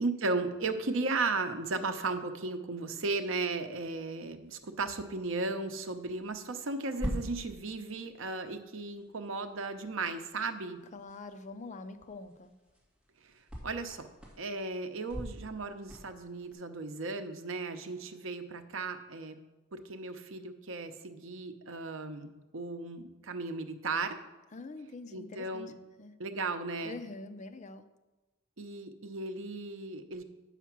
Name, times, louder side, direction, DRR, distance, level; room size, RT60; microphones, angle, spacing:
voice 1, 0.0-10.8 13.2-13.3 13.6-14.1 14.4-19.4 19.7-24.2 25.1-25.7 26.2-27.0 28.6-30.2, right 3 dB, 65° right, 8 dB, 0.7 m, -35 dB
sound 1, 4.4-16.5, equal, 5° right, 2.2 m, -46 dB
voice 2, 10.9-12.5 24.5-25.7 26.0-26.2 26.8-27.9, left 3 dB, 35° left, 9 dB, 0.5 m, -45 dB
8.2 x 5.8 x 5.9 m, 1.1 s
head